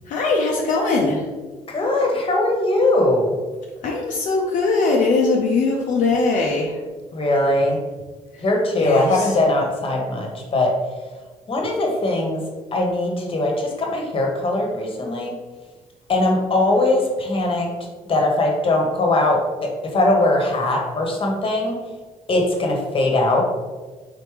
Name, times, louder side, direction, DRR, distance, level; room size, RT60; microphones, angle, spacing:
voice 1, 0.1-1.2 3.8-6.8 8.8-9.3, left 3 dB, 65° left, -1 dB, 0.5 m, -20 dB
voice 2, 1.7-3.3 7.1-7.8 8.4-10.7 11.5-12.4 12.7-15.3 16.1-17.7 18.1-21.8 22.3-23.4, left 2 dB, 40° left, 1 dB, 1.1 m, -20 dB
4.0 x 3.4 x 3.2 m, 1.3 s
supercardioid pair, 65°, 14 cm